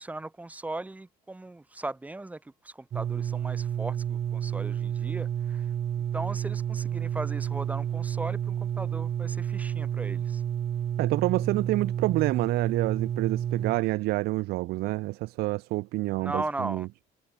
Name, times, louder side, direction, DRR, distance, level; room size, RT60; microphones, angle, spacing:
voice 1, 0.0-5.7 6.1-10.4 16.1-16.9, right 2 dB, 10° right, 6.7 m, -37 dB
sound 1, 2.9-13.8, right 9 dB, 40° right, 7.0 m, -30 dB
voice 2, 11.0-16.9, right 20 dB, 85° right, 4.0 m, -28 dB
cardioid pair, 150°, 16 cm